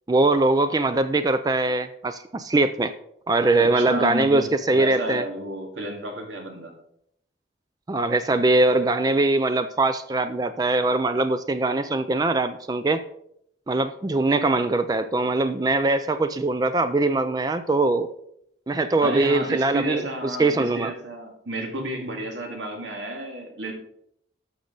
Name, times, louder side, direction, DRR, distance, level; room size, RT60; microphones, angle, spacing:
voice 1, 0.1-2.9 3.3-5.2 7.9-13.0 13.7-18.1 18.7-20.9, right 2 dB, 20° right, 11 dB, 0.3 m, -22 dB
voice 2, 3.6-6.7 19.0-23.7, right 1 dB, 90° right, 2 dB, 2.2 m, -31 dB
11.5 x 6.6 x 3.9 m, 0.72 s
head